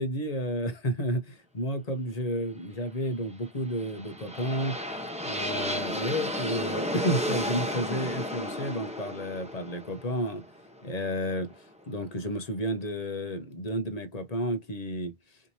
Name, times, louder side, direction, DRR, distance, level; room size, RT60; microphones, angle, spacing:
voice 1, 0.0-4.8 5.2-10.4 10.8-11.5 11.9-15.1, equal, 35° left, 1.0 m, -31 dB
sound 1, 3.6-11.5, equal, 5° right, 0.8 m, -33 dB
5.0 x 2.9 x 2.7 m
omnidirectional pair, 1.2 m